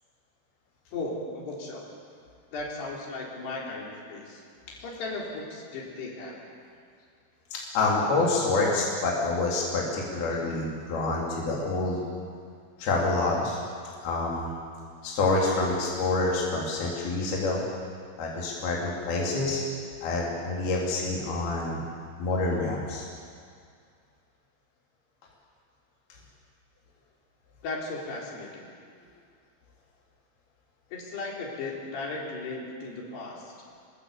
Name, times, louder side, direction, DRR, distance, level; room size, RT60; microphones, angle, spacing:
voice 1, 0.9-1.9 2.5-4.4 4.8-6.4 27.6-28.7 30.9-33.5, left 3 dB, 85° left, -3 dB, 6.1 m, -36 dB
voice 2, 7.5-12.0 12.8-13.6 14.0-14.5 15.0-17.6 18.2-19.6 20.0-21.8 22.2-23.0, left 3 dB, 70° left, -4 dB, 5.1 m, -27 dB
26.0 x 20.5 x 8.5 m, 2.2 s
omnidirectional pair, 4.6 m